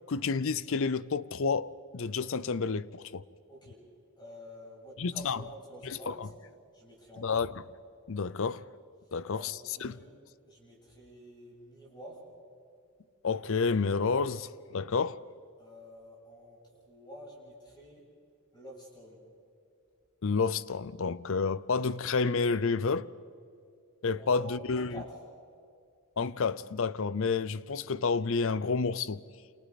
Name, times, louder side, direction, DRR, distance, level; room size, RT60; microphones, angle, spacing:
voice 1, 0.1-3.2 5.0-5.4 6.1-6.3 7.2-7.5 8.1-8.6 9.1-9.9 13.2-15.2 20.2-23.1 24.0-25.0 26.2-29.2, left 4 dB, 65° left, 0.6 m, -30 dB
voice 2, 3.5-3.8 4.2-6.3 6.7-7.4 9.3-10.1 10.4-12.2 15.6-18.1 18.5-19.2 24.1-25.2, equal, 20° left, 7.7 m, -49 dB
28.5 x 28.5 x 4.2 m
head